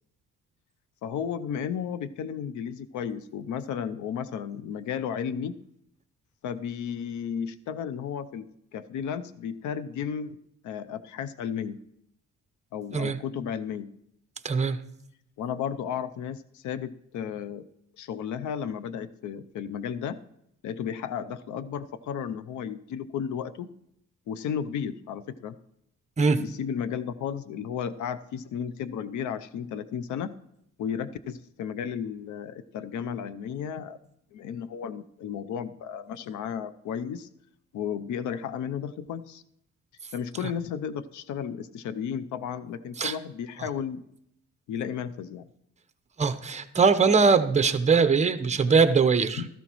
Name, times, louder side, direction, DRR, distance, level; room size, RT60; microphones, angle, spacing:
voice 1, 1.0-5.5 6.4-8.5 8.7-10.4 10.6-11.8 12.7-13.9 15.4-17.7 17.9-20.2 20.6-23.7 24.3-25.6 26.3-30.4 30.8-34.0 34.3-37.3 37.7-39.4 40.1-44.0 44.7-45.5 49.4-49.5, left 8 dB, 75° left, 13 dB, 0.7 m, -33 dB
voice 2, 14.4-14.8 26.2-26.4 43.0-43.1 46.2-49.4, right 5 dB, 25° right, 8 dB, 0.9 m, -21 dB
15.5 x 13.5 x 3.1 m, 0.77 s
cardioid pair, 90°, 30 cm